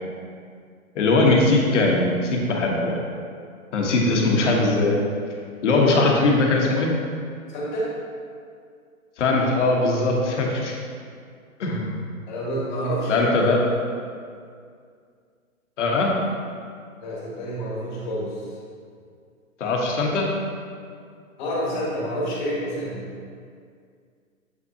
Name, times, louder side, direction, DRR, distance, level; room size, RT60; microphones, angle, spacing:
voice 1, 0.9-3.0 3.7-5.0 5.6-6.9 9.2-10.7 11.6-12.0 13.1-13.6 15.8-16.1 19.6-20.3, left 2 dB, 55° left, -1 dB, 1.2 m, -20 dB
voice 2, 7.5-7.9 12.3-13.2 17.0-18.5 21.4-23.0, equal, 30° left, -5 dB, 1.6 m, -28 dB
7.6 x 5.6 x 2.8 m, 2.2 s
hypercardioid pair, 155°, 43 cm